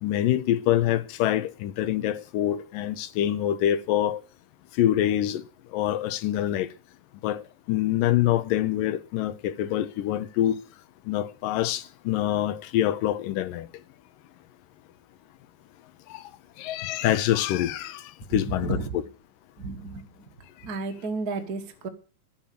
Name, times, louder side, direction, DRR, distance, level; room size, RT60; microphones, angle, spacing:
voice 1, 0.0-4.2 4.8-5.4 5.7-6.7 7.2-10.6 11.1-13.7 16.1-16.3 16.6-18.8, left 12 dB, 85° left, 2.5 m, -25 dB
voice 2, 18.3-19.0 19.6-20.3 20.6-21.9, right 4 dB, 55° right, 1.1 m, -33 dB
11.5 x 7.6 x 9.1 m
omnidirectional pair, 3.9 m